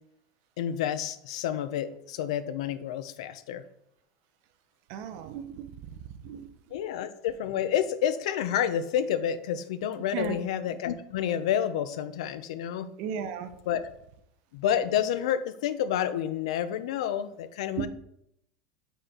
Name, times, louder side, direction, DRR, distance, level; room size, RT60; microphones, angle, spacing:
voice 1, 0.6-3.6 6.7-12.9 13.7-13.9 14.5-17.9, left 9 dB, 80° left, 13 dB, 0.5 m, -29 dB
voice 2, 4.9-5.7 6.2-6.5 10.1-10.4 13.0-13.5 17.8-17.9, right 8 dB, 55° right, 10 dB, 0.6 m, -34 dB
5.4 x 4.1 x 4.3 m, 0.75 s
supercardioid pair, 145°, 3 cm